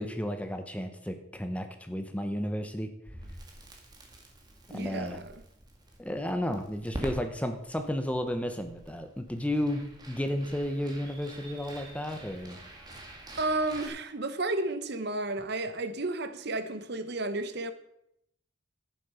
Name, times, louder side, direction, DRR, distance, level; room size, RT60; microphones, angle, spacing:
voice 1, 0.0-2.9 4.7-5.2 6.0-12.6, equal, 5° left, 1.0 m, -33 dB
Crackle, 3.1-13.9, right 1 dB, 20° right, 2.0 m, -46 dB
voice 2, 4.7-5.3 13.4-17.7, right 2 dB, 55° right, 1.0 m, -32 dB
11.5 x 10.0 x 5.7 m
head